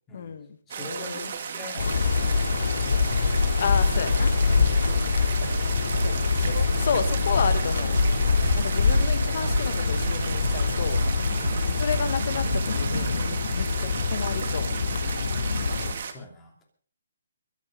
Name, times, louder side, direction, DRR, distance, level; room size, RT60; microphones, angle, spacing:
voice 1, 0.1-1.3 3.6-5.3 6.0-8.0 8.5-11.0 11.8-13.1 13.5-14.7, left 6 dB, 40° left, 11 dB, 1.7 m, -32 dB
voice 2, 0.7-2.5 15.7-16.6, left 1 dB, 10° left, 1 dB, 2.8 m, -45 dB
sound 1, 0.7-16.1, right 6 dB, 40° right, 2.0 m, -35 dB
sound 2, 1.8-15.9, left 4 dB, 75° left, 2.6 m, -25 dB
sound 3, 5.4-13.4, right 4 dB, 75° right, 1.2 m, -33 dB
22.5 x 8.4 x 5.3 m, 0.43 s
hypercardioid pair, 180°, 0 cm